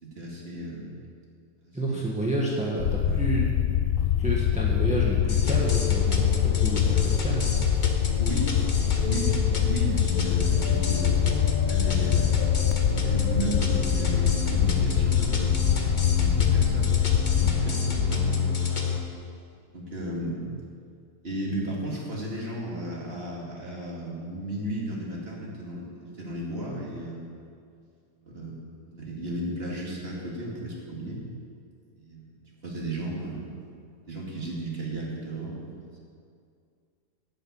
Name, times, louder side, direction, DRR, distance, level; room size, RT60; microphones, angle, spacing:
voice 1, 0.0-0.9 1.6-2.0 8.2-8.6 9.0-11.4 11.7-12.3 12.9-15.7 16.2-17.0 17.3-18.6 19.7-20.4 21.2-27.3 28.2-28.6 28.9-31.2 32.0-32.2 32.6-33.5 34.1-36.0, right 1 dB, 35° right, -4 dB, 2.6 m, -34 dB
voice 2, 1.7-3.6 4.2-7.5, right 1 dB, 5° right, -4 dB, 1.2 m, -29 dB
sound 1, 2.8-17.5, left 10 dB, 85° left, 0.6 m, -24 dB
sound 2, 5.3-19.0, left 5 dB, 35° left, 1.0 m, -28 dB
10.5 x 7.9 x 8.6 m, 2.3 s
omnidirectional pair, 1.8 m